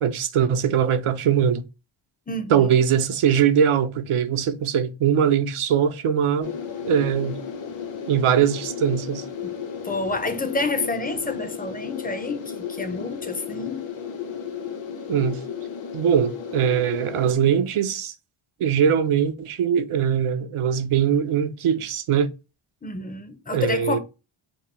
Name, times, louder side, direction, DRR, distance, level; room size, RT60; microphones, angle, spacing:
voice 1, 0.0-1.6 2.5-6.5 6.9-7.4 8.1-9.2 15.1-15.4 15.9-18.1 18.6-22.3 23.5-24.0, right 8 dB, 85° right, 0.6 m, -21 dB
voice 2, 2.3-2.7 9.8-13.9 22.8-24.0, left 2 dB, 20° left, 0.4 m, -29 dB
sound 1, 6.4-17.3, left 7 dB, 65° left, 0.8 m, -34 dB
3.1 x 2.2 x 4.2 m
wide cardioid pair, 180°, 49 cm